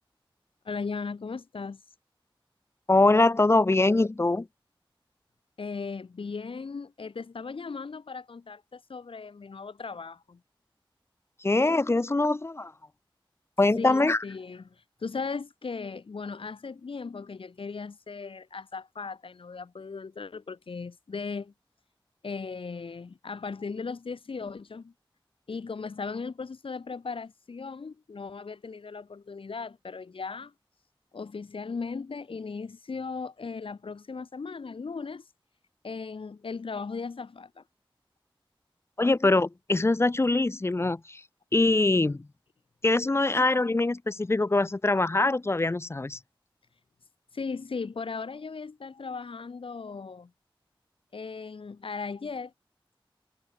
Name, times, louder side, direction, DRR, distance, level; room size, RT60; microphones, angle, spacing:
voice 1, 0.6-1.8 5.6-10.4 13.8-21.5 22.2-24.9 25.5-30.5 31.1-35.3 35.8-37.6 47.3-50.3 51.1-52.5, left 4 dB, 80° left, 0.9 m, -37 dB
voice 2, 2.9-4.5 11.4-12.7 13.6-14.2 39.0-41.2 41.5-42.3 42.8-46.2, left 2 dB, 30° left, 0.4 m, -23 dB
wide cardioid pair, 60°, 9 cm